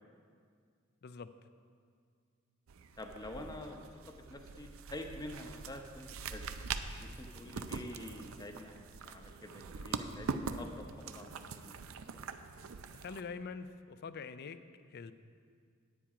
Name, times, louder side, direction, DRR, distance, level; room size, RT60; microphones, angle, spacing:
sound 1, 2.7-13.2, right 5 dB, 80° right, 0.5 m, -43 dB
voice 1, 3.0-6.5 7.0-11.7, left 1 dB, 20° left, 4 dB, 0.8 m, -47 dB
voice 2, 13.0-14.6 14.9-15.1, left 5 dB, 50° left, 12 dB, 0.4 m, -44 dB
10.5 x 8.7 x 4.9 m, 2.1 s
head